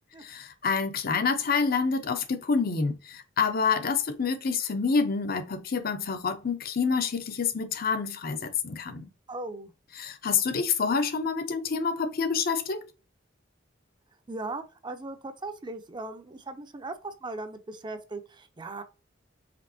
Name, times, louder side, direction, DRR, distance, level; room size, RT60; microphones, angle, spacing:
voice 1, 0.2-9.1 10.0-12.8, left 5 dB, 50° left, 0.6 m, -27 dB
voice 2, 9.3-9.7 14.3-18.8, right 2 dB, 25° right, 0.5 m, -38 dB
5.1 x 3.4 x 2.7 m
head